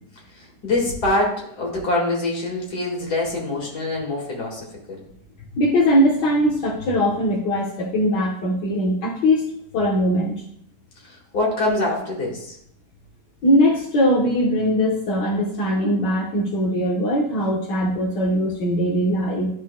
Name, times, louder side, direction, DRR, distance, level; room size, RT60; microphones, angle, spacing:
voice 1, 0.3-5.0 11.0-12.6, left 2 dB, 65° left, -2 dB, 2.4 m, -25 dB
voice 2, 5.5-9.4 9.7-10.3 13.4-19.5, equal, 80° left, -5 dB, 1.8 m, -20 dB
12.5 x 4.5 x 2.2 m, 0.70 s
omnidirectional pair, 1.9 m